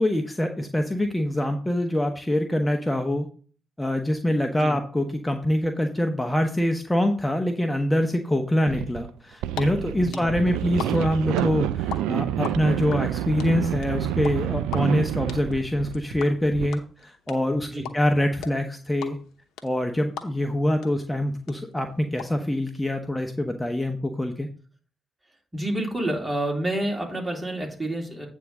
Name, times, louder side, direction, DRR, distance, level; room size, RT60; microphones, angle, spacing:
voice 1, 0.0-3.3 3.8-17.7 17.9-19.2 19.6-24.5, left 1 dB, 10° left, 4 dB, 1.1 m, -25 dB
sound 1, 8.7-9.1 9.4-16.7, right 12 dB, 80° right, 0.4 m, -28 dB
sound 2, 9.2-9.6 9.9-12.0 12.2-20.6 20.8-20.9 21.2-22.2, left 8 dB, 75° left, 0.9 m, -36 dB
voice 2, 9.9-10.3 17.6-17.9 25.5-28.3, right 1 dB, 25° right, 0 dB, 3.3 m, -29 dB
9.0 x 3.7 x 6.6 m, 0.41 s
hypercardioid pair, 40°, 0 cm